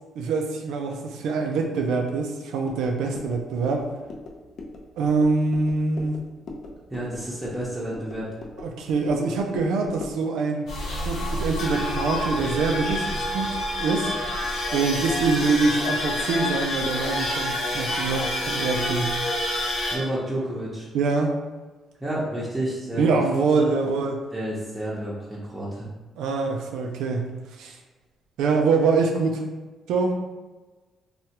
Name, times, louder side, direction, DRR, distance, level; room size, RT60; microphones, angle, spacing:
voice 1, 0.2-3.9 5.0-6.2 8.6-10.7 11.0-13.5 13.8-14.1 14.7-19.1 20.9-21.3 22.9-24.2 26.2-27.3 27.6-27.8 28.4-29.4 29.9-30.1, right 4 dB, 85° right, 3 dB, 0.4 m, -24 dB
sound 1, 2.7-10.3, left 2 dB, 60° left, 0.4 m, -41 dB
voice 2, 6.9-8.3 19.9-20.9 22.0-23.2 23.5-23.7 24.3-25.9, right 1 dB, 10° right, -8 dB, 0.7 m, -30 dB
sound 2, 10.7-20.0, left 1 dB, 90° left, 1.0 m, -28 dB
3.3 x 2.3 x 2.8 m, 1.2 s
cardioid pair, 90°, 0 cm